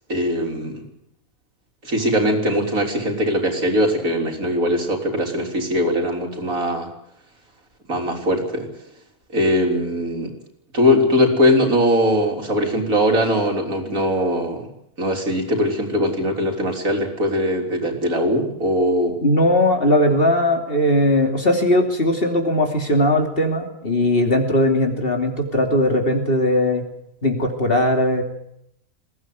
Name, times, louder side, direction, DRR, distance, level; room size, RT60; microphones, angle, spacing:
voice 1, 0.1-0.8 1.8-6.9 7.9-8.7 9.3-10.3 10.7-14.7 15.0-19.2, equal, 75° right, 2 dB, 4.2 m, -20 dB
voice 2, 19.2-26.8 27.2-28.2, left 1 dB, 40° left, 4 dB, 3.1 m, -19 dB
21.5 x 16.5 x 9.4 m, 0.76 s
omnidirectional pair, 1.5 m